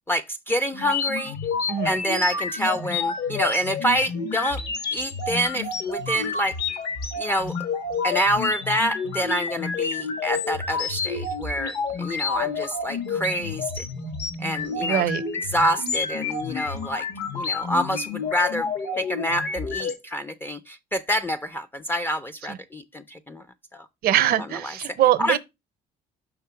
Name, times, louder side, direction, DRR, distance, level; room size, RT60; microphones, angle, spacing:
voice 1, 0.1-1.4 1.8-4.6 4.9-6.6 7.2-7.6 8.0-13.9 14.4-15.0 15.5-17.1 17.3-18.7 19.0-23.4 23.7-23.9 24.6-24.7 25.2-25.4, equal, 15° left, 0.4 m, -27 dB
sound 1, 0.7-19.9, left 5 dB, 70° left, 1.3 m, -29 dB
voice 2, 14.8-15.2 22.5-22.6 24.0-25.4, right 12 dB, 65° right, 0.6 m, -22 dB
5.9 x 3.5 x 5.6 m
cardioid pair, 110°, 17 cm